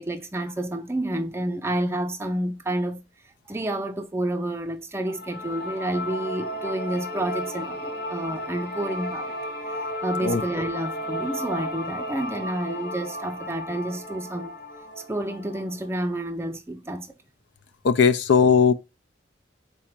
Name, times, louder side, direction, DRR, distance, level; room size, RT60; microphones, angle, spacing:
voice 1, 0.0-3.0 3.5-9.3 9.7-14.5 15.1-17.1, right 1 dB, 15° right, 0.4 m, -29 dB
sound 1, 5.1-16.1, left 1 dB, 55° left, 1.3 m, -34 dB
voice 2, 17.8-18.7, left 6 dB, 75° left, 0.4 m, -18 dB
4.1 x 2.5 x 4.3 m
head